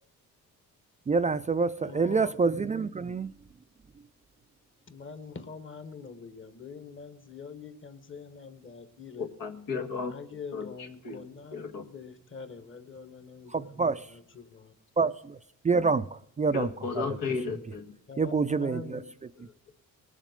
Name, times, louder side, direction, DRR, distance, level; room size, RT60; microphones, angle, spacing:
voice 1, 1.1-3.3 13.5-14.1 15.0-15.4 15.6-16.7 18.2-19.0, right 4 dB, 25° right, 0.4 m, -27 dB
voice 2, 1.8-2.5 4.9-9.3 10.1-14.7 18.1-19.5, left 5 dB, 35° left, 1.4 m, -45 dB
voice 3, 9.2-10.1 10.5-11.2 11.5-11.9 16.5-17.9, left 5 dB, 85° left, 1.8 m, -34 dB
18.5 x 7.3 x 5.2 m
cardioid pair, 100°, 33 cm